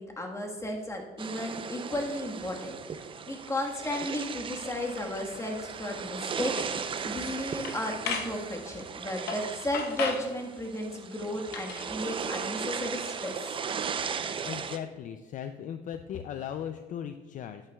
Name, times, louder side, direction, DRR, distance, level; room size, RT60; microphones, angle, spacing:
voice 1, 0.0-13.6, left 1 dB, 15° left, 1 dB, 1.4 m, -34 dB
sound 1, 1.2-14.8, right 6 dB, 30° right, 0.4 m, -37 dB
sound 2, 6.6-6.7 7.1-7.3 7.7-8.3 9.3-9.5 9.7-10.3 11.5-11.9, left 5 dB, 75° left, 0.9 m, -34 dB
voice 2, 14.4-17.6, left 9 dB, 50° left, 8 dB, 0.4 m, -37 dB
10.5 x 8.8 x 2.3 m, 1.3 s
cardioid pair, 110°, 17 cm